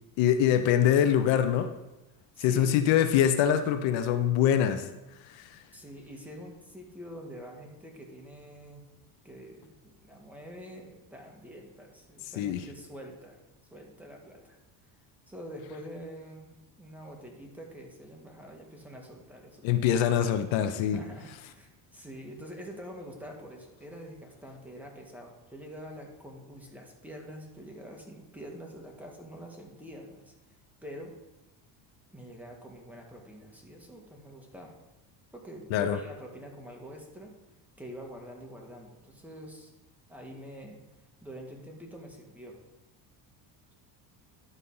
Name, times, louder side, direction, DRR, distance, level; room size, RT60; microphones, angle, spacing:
voice 1, 0.2-1.7 2.4-4.9 5.3-5.6 12.4-12.6 19.6-21.0 35.7-36.0, left 10 dB, 75° left, 9 dB, 0.8 m, -24 dB
voice 2, 2.3-2.8 5.7-8.8 9.2-13.4 13.7-14.6 15.3-19.8 20.9-30.6 30.8-31.2 32.1-34.7 35.3-37.3 37.8-39.7 40.1-40.8 41.2-42.6, equal, 5° right, 0 dB, 1.7 m, -45 dB
11.0 x 4.1 x 5.5 m, 1.0 s
cardioid pair, 115°, 46 cm